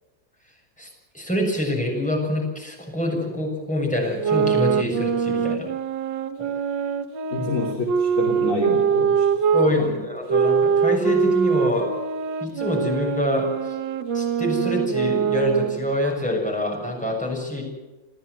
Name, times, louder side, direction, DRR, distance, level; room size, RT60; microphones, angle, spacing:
voice 1, 1.1-5.7 7.4-7.5 9.5-11.9 12.4-13.8 14.1-17.6, left 1 dB, 5° left, -1 dB, 7.0 m, -25 dB
sound 1, 4.1-9.7 10.3-15.9, right 6 dB, 75° right, 1.8 m, -23 dB
voice 2, 7.3-10.0, left 2 dB, 40° left, -1 dB, 3.3 m, -28 dB
29.5 x 13.5 x 8.1 m, 1.1 s
omnidirectional pair, 2.0 m